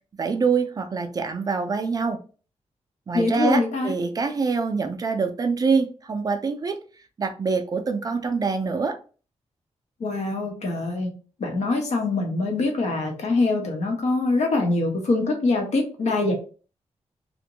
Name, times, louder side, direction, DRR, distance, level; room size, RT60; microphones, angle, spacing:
voice 1, 0.2-2.2 3.1-6.8 7.2-9.0, right 5 dB, 35° right, 0.3 m, -25 dB
voice 2, 3.1-3.9 10.0-11.1 11.4-16.3, left 3 dB, 80° left, 0.8 m, -24 dB
2.5 x 2.1 x 2.8 m
wide cardioid pair, 170°, 12 cm